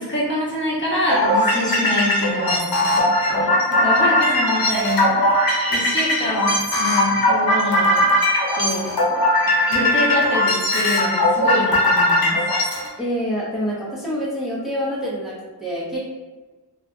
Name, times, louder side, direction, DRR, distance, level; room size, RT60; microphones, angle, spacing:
voice 1, 0.0-8.1 8.6-8.9 9.7-12.4, left 1 dB, 30° left, -6 dB, 0.9 m, -25 dB
sound 1, 1.1-12.9, left 1 dB, 60° left, 0.8 m, -19 dB
voice 2, 13.0-16.1, equal, ahead, -7 dB, 0.6 m, -27 dB
2.6 x 2.4 x 2.3 m, 1.3 s
wide cardioid pair, 55°, 41 cm